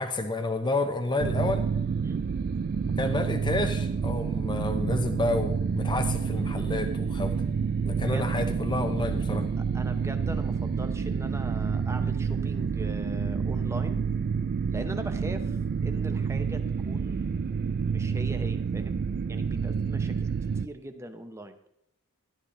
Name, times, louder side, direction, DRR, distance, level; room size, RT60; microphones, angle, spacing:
voice 1, 0.0-1.6 2.8-7.4 7.8-9.5, left 2 dB, 20° left, 6 dB, 0.7 m, -30 dB
sound 1, 1.2-20.7, right 6 dB, 45° right, 0.3 m, -28 dB
voice 2, 8.0-8.4 9.6-14.0 14.7-15.6 15.8-17.4 17.9-19.0 19.3-21.5, right 1 dB, 15° right, 7 dB, 0.9 m, -41 dB
12.5 x 11.5 x 3.3 m, 0.76 s
head